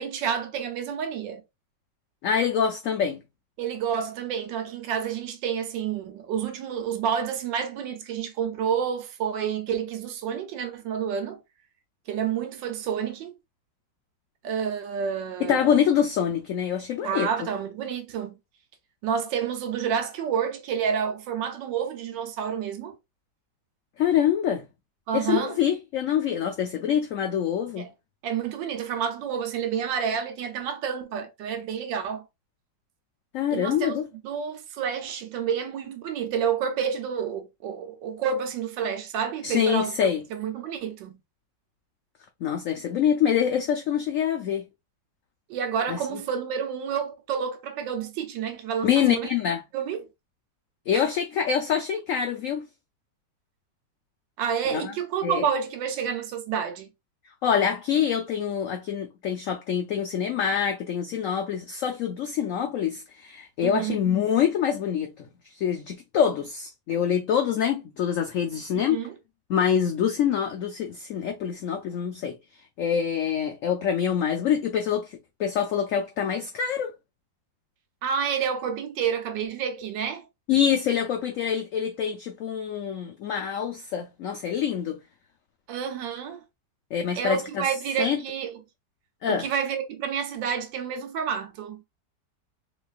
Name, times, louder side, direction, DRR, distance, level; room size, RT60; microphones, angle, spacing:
voice 1, 0.0-1.4 3.6-11.4 12.1-13.3 14.4-15.8 17.0-18.4 19.0-23.0 25.1-25.6 27.8-27.9 28.2-32.2 33.5-34.0 34.2-41.2 45.5-49.3 49.7-50.1 50.9-51.0 54.4-56.9 63.6-64.0 68.7-69.1 78.0-80.2 85.7-86.4 87.1-88.5 89.3-91.8, right 7 dB, 85° right, 1.4 m, -29 dB
voice 2, 2.2-3.2 15.4-17.3 24.0-24.7 25.1-27.9 33.3-34.0 39.4-40.2 42.4-44.6 45.9-46.0 48.8-49.6 50.9-52.7 54.7-54.9 55.2-55.4 57.4-69.0 69.5-72.4 72.8-76.9 80.5-85.0 86.9-87.7 88.0-88.2 89.2-89.5, left 8 dB, 85° left, 0.7 m, -25 dB
3.8 x 3.2 x 2.4 m
omnidirectional pair, 2.0 m